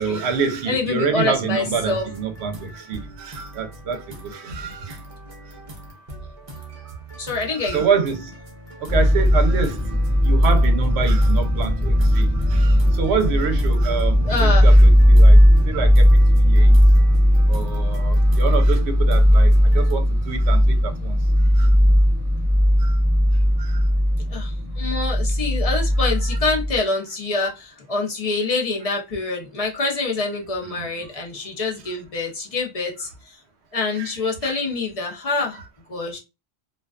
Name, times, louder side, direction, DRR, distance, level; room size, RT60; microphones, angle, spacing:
voice 1, 0.0-5.0 6.8-7.0 7.4-8.3 8.8-9.9 10.2-15.4 15.6-16.9 17.5-21.2 21.5-21.7 22.8-23.0 23.6-23.9 25.7-26.1 30.6-30.9 33.9-34.1 34.4-34.5 35.5-35.6, right 6 dB, 75° right, 0.9 m, -27 dB
voice 2, 0.7-2.1 7.2-7.8 14.2-14.7 24.3-33.1 33.7-35.6 35.9-36.2, left 3 dB, 40° left, 0.7 m, -26 dB
sound 1, 1.7-19.9, right 1 dB, 40° right, 0.6 m, -41 dB
sound 2, 8.9-26.8, equal, ahead, 0.5 m, -16 dB
2.4 x 2.3 x 2.3 m
omnidirectional pair, 1.1 m